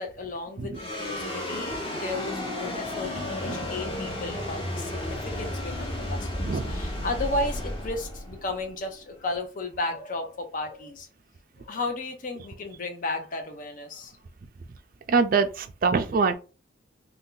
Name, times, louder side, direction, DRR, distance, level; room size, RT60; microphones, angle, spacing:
voice 1, 0.0-11.1 11.6-14.2, left 2 dB, 45° left, 0.6 m, -34 dB
sound 1, 0.7-9.3, left 1 dB, 30° left, 1.1 m, -33 dB
voice 2, 6.4-6.7 15.1-16.3, right 4 dB, 50° right, 0.4 m, -24 dB
2.7 x 2.2 x 3.7 m
head